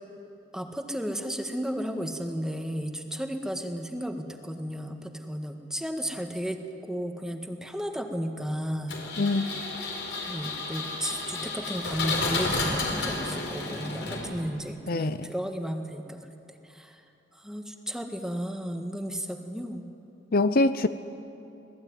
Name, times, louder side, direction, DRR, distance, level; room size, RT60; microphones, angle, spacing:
voice 1, 0.5-9.0 9.3-9.5 10.3-16.3 16.6-17.0 17.3-19.9, equal, 5° right, 4 dB, 1.7 m, -34 dB
Engine, 8.9-14.6, left 3 dB, 75° left, 4.7 m, -31 dB
voice 2, 9.2-9.5 14.9-15.2 20.3-20.9, left 2 dB, 55° left, 11 dB, 0.7 m, -23 dB
26.0 x 19.0 x 9.6 m, 2.7 s
head